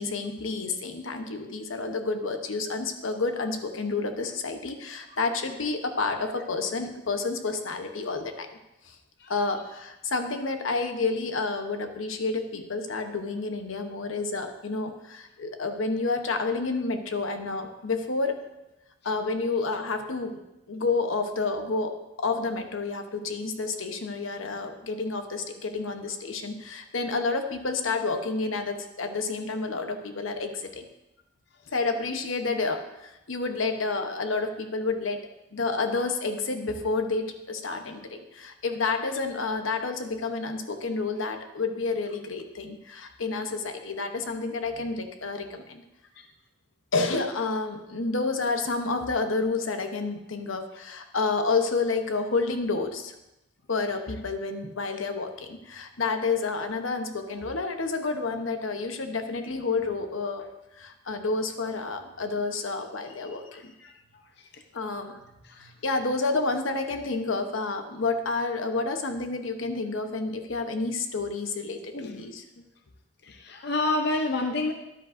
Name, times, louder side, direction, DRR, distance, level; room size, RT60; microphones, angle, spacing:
voice 1, 0.0-8.5 8.8-8.9 9.3-18.4 19.0-20.4 20.7-21.9 22.2-30.8 31.7-35.2 35.5-45.8 46.9-53.1 53.7-60.5 60.8-63.7 64.7-65.1 65.6-72.4, left 3 dB, 85° left, 6 dB, 1.0 m, -29 dB
voice 2, 63.5-64.6 65.0-65.2 65.4-65.7 71.9-72.2 73.2-74.7, left 2 dB, 55° left, 4 dB, 0.7 m, -30 dB
13.0 x 10.5 x 2.6 m, 0.93 s
head